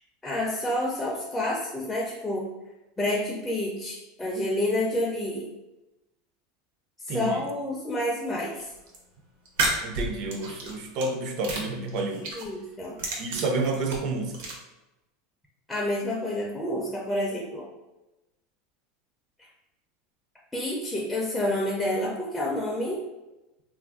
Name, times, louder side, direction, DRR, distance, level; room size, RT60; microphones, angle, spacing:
voice 1, 0.2-2.5 3.0-5.5 7.0-8.7 12.3-13.0 15.7-17.7 19.4-19.5 20.5-23.0, left 1 dB, 10° left, -4 dB, 0.4 m, -29 dB
voice 2, 7.1-7.4 9.8-12.3 13.2-14.4, right 3 dB, 50° right, 3 dB, 0.5 m, -29 dB
sound 1, 8.6-9.0 9.4-11.1 11.4-12.5 12.8-14.5, right 2 dB, 75° right, 0.8 m, -31 dB
2.4 x 2.2 x 3.5 m, 1.0 s
supercardioid pair, 145°, 0 cm